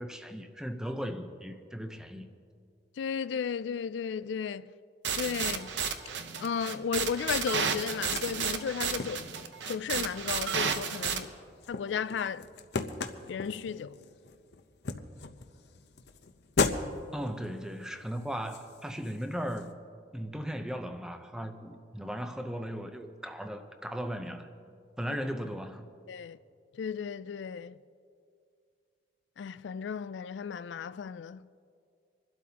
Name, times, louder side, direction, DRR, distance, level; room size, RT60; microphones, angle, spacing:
voice 1, 0.0-2.3 17.1-19.7 20.1-24.5 25.0-25.9, equal, 5° right, 0.6 m, -37 dB
voice 2, 3.0-4.7 5.1-5.7 6.4-9.3 9.7-11.3 11.7-12.5 13.3-14.0 26.1-26.4 26.8-27.7 29.4-31.4, left 7 dB, 85° left, 0.3 m, -34 dB
sound 1, 5.0-11.2, right 6 dB, 90° right, 0.9 m, -32 dB
sound 2, 7.4-19.7, left 4 dB, 70° left, 0.7 m, -38 dB
26.0 x 12.0 x 2.9 m
head